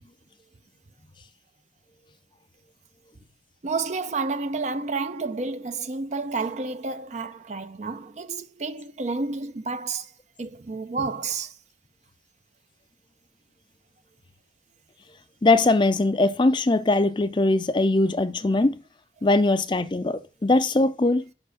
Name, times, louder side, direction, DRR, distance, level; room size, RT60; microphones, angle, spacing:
voice 1, 3.6-10.1 10.4-11.5, right 4 dB, 40° right, 0.5 m, -30 dB
voice 2, 15.4-18.8 19.2-21.3, left 2 dB, 25° left, 0.4 m, -21 dB
5.7 x 4.4 x 6.4 m
head